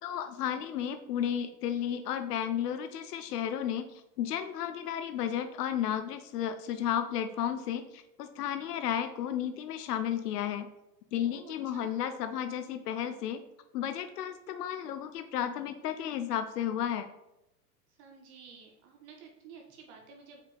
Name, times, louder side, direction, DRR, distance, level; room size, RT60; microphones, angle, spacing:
voice 1, 0.0-10.7 11.1-13.4 13.7-17.1, left 9 dB, 70° left, 9 dB, 0.7 m, -33 dB
voice 2, 11.2-11.9 18.0-20.4, right 5 dB, 45° right, 2 dB, 1.3 m, -52 dB
5.3 x 5.1 x 4.9 m, 0.91 s
hypercardioid pair, 125°, 49 cm